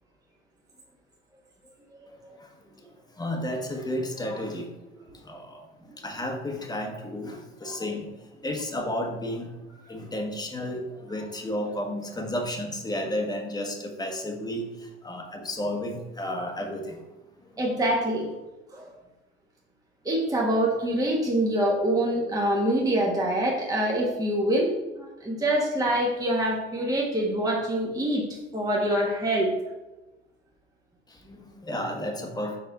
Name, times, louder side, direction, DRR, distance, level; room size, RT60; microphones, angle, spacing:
voice 1, 2.1-4.7 5.1-5.7 6.0-9.5 9.9-17.1 17.4-17.5 31.1-32.6, left 1 dB, 10° left, 2 dB, 1.4 m, -33 dB
voice 2, 17.6-18.3 18.7-18.9 20.0-29.5, right 1 dB, 10° right, -3 dB, 1.4 m, -25 dB
5.7 x 4.8 x 4.1 m, 1.1 s
figure-of-eight pair, 65°, 33 cm